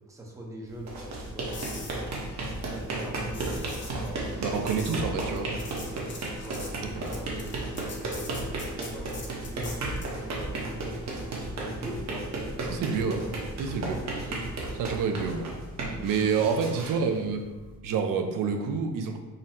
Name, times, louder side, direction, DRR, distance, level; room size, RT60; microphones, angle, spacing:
voice 1, 0.1-2.1 2.4-5.5 5.8-6.1 6.3-12.3 12.7-13.0 13.9-14.4 14.7-15.0 15.8-17.1, right 1 dB, 10° right, -1 dB, 0.5 m, -43 dB
sound 1, 0.7-17.7, right 2 dB, 60° right, 0.8 m, -34 dB
sound 2, 1.5-10.2 14.4-14.6, left 3 dB, 40° left, 0.6 m, -45 dB
voice 2, 4.4-5.5 7.0-7.1 12.7-13.2 13.6-14.0 14.8-15.5 16.0-17.4 17.8-19.2, right 5 dB, 80° right, 4 dB, 0.5 m, -28 dB
3.9 x 2.0 x 4.2 m, 1.2 s
wide cardioid pair, 150°, 32 cm